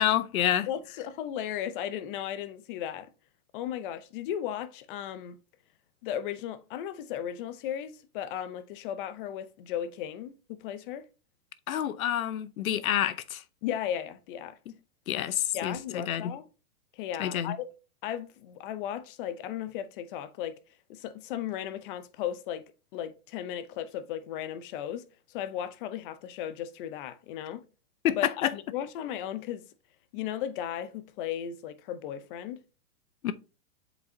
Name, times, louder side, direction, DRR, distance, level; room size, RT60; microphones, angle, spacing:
voice 1, 0.0-0.7 11.7-13.4 15.1-16.3 17.2-17.5 28.0-28.5 33.2-33.3, left 11 dB, 70° left, 0.7 m, -28 dB
voice 2, 0.7-3.1 3.5-5.4 6.0-11.0 13.6-14.6 15.5-16.4 16.9-17.7 18.0-20.6 20.9-22.6 22.9-27.6 28.2-29.6 30.1-32.6, left 10 dB, 35° left, 0.7 m, -36 dB
7.7 x 5.1 x 2.8 m
hypercardioid pair, 145°, 43 cm